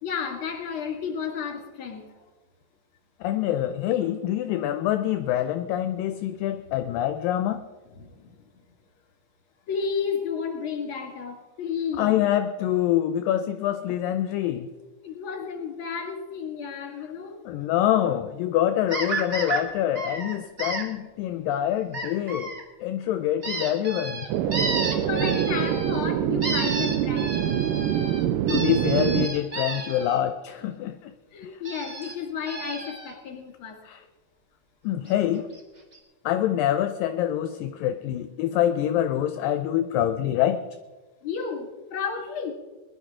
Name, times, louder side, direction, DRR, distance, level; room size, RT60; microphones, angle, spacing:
voice 1, 0.0-2.1 8.0-8.4 9.7-12.2 15.0-17.4 24.7-27.8 31.3-33.8 41.2-42.5, left 6 dB, 40° left, 3 dB, 2.4 m, -32 dB
voice 2, 3.2-7.6 12.0-14.7 17.5-22.5 22.8-24.3 28.5-31.1 31.4-31.5 33.8-34.0 34.8-35.5 36.3-40.7, left 11 dB, 80° left, 9 dB, 2.1 m, -25 dB
sound 1, 18.9-19.6 19.9-20.8 21.9-22.6 23.4-26.1 26.4-30.2 31.6-32.1 32.5-33.1 35.1-35.2 35.5-35.6 35.9-36.0, right 2 dB, 50° right, 0.7 m, -32 dB
sound 2, 24.3-29.3, right 10 dB, 75° right, 2.1 m, -25 dB
21.5 x 11.5 x 3.7 m, 1.2 s
omnidirectional pair, 4.4 m